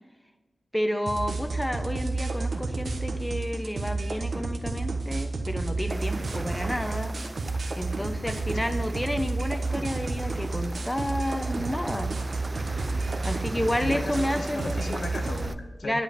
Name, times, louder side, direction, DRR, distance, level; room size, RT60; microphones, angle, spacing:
voice 1, 0.7-7.1 7.8-12.1 13.2-14.8 15.8-16.0, equal, 10° left, 7 dB, 1.1 m, -30 dB
sound 1, 1.1-15.5, right 3 dB, 80° right, 1.4 m, -31 dB
sound 2, 5.9-15.6, right 2 dB, 40° right, 0.5 m, -40 dB
voice 2, 8.5-8.8 13.5-16.0, left 3 dB, 90° left, 6 dB, 0.9 m, -37 dB
11.0 x 5.1 x 8.5 m, 1.3 s
wide cardioid pair, 55°, 0 cm